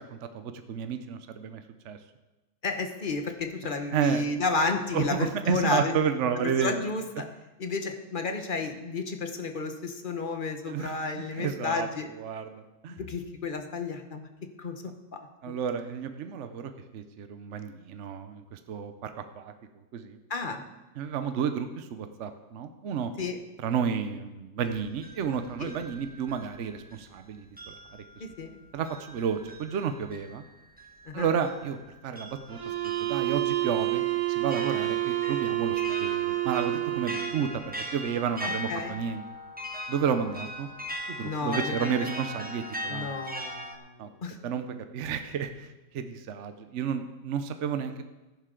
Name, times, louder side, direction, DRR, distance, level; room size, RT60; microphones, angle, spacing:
voice 1, 0.0-2.0 3.9-4.2 4.9-6.7 7.2-7.3 10.7-11.9 12.2-13.0 15.4-19.5 19.9-20.2 21.0-23.1 23.6-28.0 28.7-30.4 31.1-31.8 32.0-32.7 33.0-34.0 34.3-37.6 37.9-39.2 39.9-40.7 41.1-43.1 44.0-44.1 44.4-44.6 44.9-45.7 45.9-48.0, right 7 dB, 70° right, 8 dB, 0.7 m, -31 dB
voice 2, 2.6-6.0 6.4-7.3 7.6-12.1 12.9-14.3 14.6-14.8 15.1-15.2 15.5-15.6 20.3-20.6 23.2-23.4 25.6-25.7 28.2-28.6 31.1-31.3 38.4-39.0 41.2-42.1 42.9-44.4, left 3 dB, 40° left, 6 dB, 0.7 m, -32 dB
sound 1, 24.7-27.2 27.6-43.8, equal, 15° right, 0.3 m, -40 dB
sound 2, 32.5-37.5, right 15 dB, 45° right, 1.6 m, -28 dB
14.0 x 11.0 x 3.8 m, 1.1 s
omnidirectional pair, 2.1 m